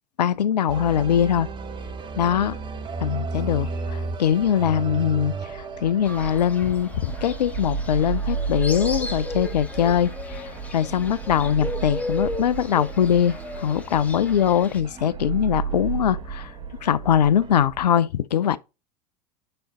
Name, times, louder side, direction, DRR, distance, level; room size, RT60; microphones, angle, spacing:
voice 1, 0.2-1.5 2.2-2.6 3.0-10.4 10.7-16.5 16.8-18.6, left 9 dB, 75° left, 0.5 m, -22 dB
sound 1, 0.7-17.7, right 4 dB, 25° right, 0.9 m, -37 dB
sound 2, 1.0-17.9, right 6 dB, 40° right, 3.0 m, -34 dB
Fowl, 6.0-14.8, left 2 dB, 5° left, 1.6 m, -36 dB
8.9 x 3.8 x 3.6 m
figure-of-eight pair, 80°, 21 cm